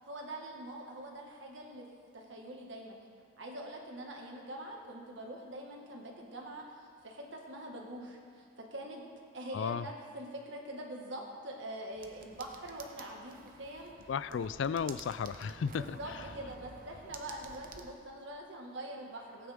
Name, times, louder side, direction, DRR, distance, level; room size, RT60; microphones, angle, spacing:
voice 1, 0.1-1.9 2.1-3.0 3.4-6.7 7.0-9.1 9.3-13.9 15.8-19.5, right 1 dB, 60° right, 0 dB, 1.8 m, -44 dB
voice 2, 9.5-9.9 14.1-16.0, left 6 dB, 60° left, 15 dB, 0.3 m, -34 dB
sound 1, 11.9-17.9, right 3 dB, 45° right, 0.8 m, -51 dB
17.5 x 9.3 x 3.6 m, 2.3 s
head